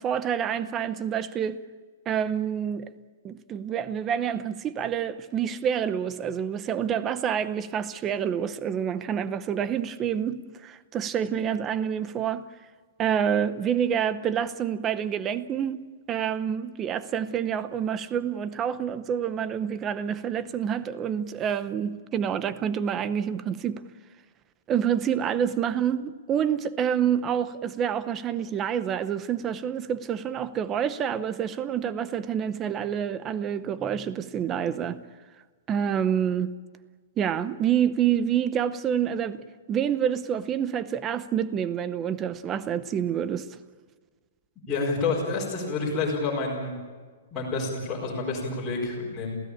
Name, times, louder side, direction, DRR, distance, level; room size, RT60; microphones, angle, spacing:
voice 1, 0.0-1.6 2.1-2.9 3.2-12.4 13.0-15.8 16.1-23.8 24.7-35.0 35.7-36.5 37.2-43.5, right 8 dB, 15° right, 0.7 m, -27 dB
voice 2, 44.7-46.8 47.3-49.4, left 3 dB, 10° left, 4.7 m, -28 dB
27.5 x 16.0 x 8.7 m
hypercardioid pair, 170°, 0 cm